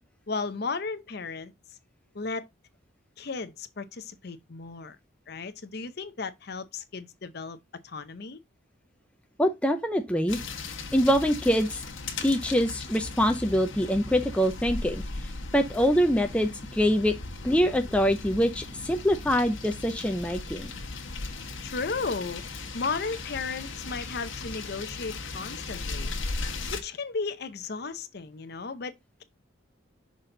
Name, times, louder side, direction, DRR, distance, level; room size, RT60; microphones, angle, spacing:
voice 1, 0.3-1.5 2.1-2.5 3.2-5.0 5.3-7.6 7.8-8.4 21.6-22.4 22.7-26.1 26.7-28.9, left 4 dB, 50° left, 0.7 m, -34 dB
voice 2, 9.4-10.4 10.9-11.8 12.2-15.0 15.5-17.1 17.4-20.7, equal, 5° left, 0.5 m, -24 dB
sound 1, 10.3-26.8, left 3 dB, 70° left, 1.3 m, -37 dB
6.3 x 4.1 x 3.7 m
head